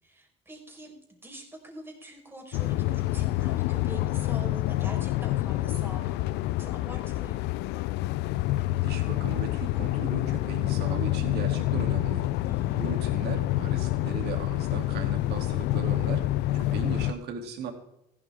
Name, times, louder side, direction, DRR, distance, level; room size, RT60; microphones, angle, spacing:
voice 1, 0.0-7.6 12.5-12.8, right 1 dB, 15° right, 1 dB, 4.4 m, -45 dB
sound 1, 2.5-17.1, left 16 dB, 85° left, 0.4 m, -27 dB
voice 2, 8.8-12.2 12.7-16.2 16.5-17.7, right 5 dB, 75° right, 3 dB, 2.8 m, -37 dB
15.0 x 12.0 x 3.6 m, 0.81 s
cardioid pair, 110°, 17 cm